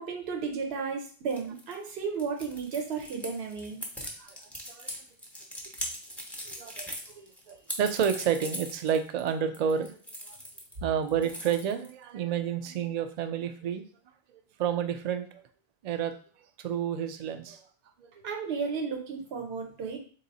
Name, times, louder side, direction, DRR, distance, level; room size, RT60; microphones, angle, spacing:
voice 1, 0.0-3.8 18.2-20.0, right 5 dB, 80° right, 1 dB, 1.0 m, -33 dB
sound 1, 1.3-10.7 11.0-12.0, equal, ahead, 0.7 m, -40 dB
voice 2, 6.5-10.0 10.3-10.4 10.8-13.8 14.6-15.4 15.8-16.1 16.6-17.6 18.0-18.1, right 8 dB, 55° right, 8 dB, 0.5 m, -30 dB
3.8 x 2.7 x 4.0 m, 0.44 s
omnidirectional pair, 1.0 m